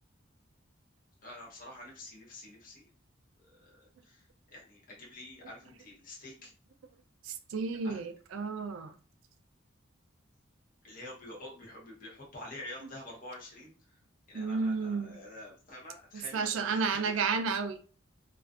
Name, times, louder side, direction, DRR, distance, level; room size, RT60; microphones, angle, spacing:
voice 1, 1.2-2.9 3.4-6.5 7.8-8.0 10.8-14.0 14.3-17.3, left 1 dB, 45° left, 0.9 m, -48 dB
voice 2, 7.2-8.9 14.3-15.2 16.1-17.8, right 5 dB, 75° right, 0.3 m, -32 dB
2.4 x 2.3 x 2.3 m
head